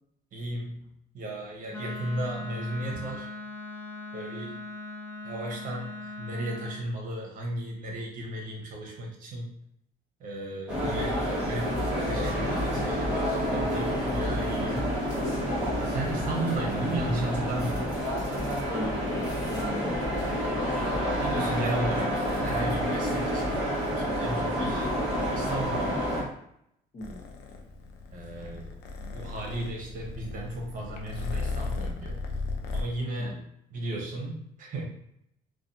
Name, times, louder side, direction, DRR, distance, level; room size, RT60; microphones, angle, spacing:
voice 1, 0.3-3.3 4.1-4.6 5.2-9.5 10.2-11.1 11.5-11.8 12.0-14.9 15.7-17.9 20.7-24.9 25.3-26.1 28.1-32.2 32.7-33.4 33.7-34.8, right 1 dB, 55° right, 0 dB, 0.9 m, -35 dB
Wind instrument woodwind instrument, 1.7-6.9, left 2 dB, 15° left, 0.6 m, -40 dB
sound 1, 10.7-26.2, equal, 5° right, 1.1 m, -29 dB
voice 2, 10.9-11.4 18.7-20.0 24.6-24.9 26.9-27.2 33.2-33.4, equal, 35° left, -1 dB, 0.9 m, -39 dB
Purr, 27.0-32.8, left 3 dB, 75° left, 0.5 m, -36 dB
2.7 x 2.3 x 2.5 m, 0.74 s
cardioid pair, 110°, 17 cm